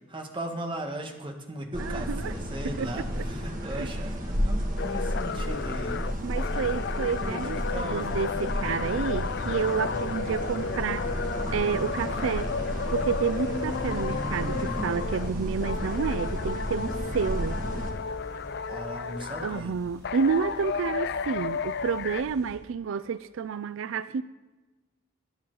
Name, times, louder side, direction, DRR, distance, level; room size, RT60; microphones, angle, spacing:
voice 1, 0.1-6.1 7.2-8.2 13.4-14.9 18.7-19.8, right 1 dB, 25° right, 1.5 m, -37 dB
sound 1, 1.7-17.9, equal, 45° right, 2.0 m, -32 dB
voice 2, 1.8-2.3 2.8-2.9 3.2-3.3 3.7-3.9 6.2-11.1 11.5-12.5 12.9-17.6 19.4-24.2, right 6 dB, 80° right, 0.4 m, -30 dB
sound 2, 4.8-15.3 15.6-19.6 20.0-22.2, left 5 dB, 55° left, 0.4 m, -33 dB
sound 3, 11.7-22.6, equal, 65° right, 3.9 m, -48 dB
21.5 x 10.0 x 3.9 m
head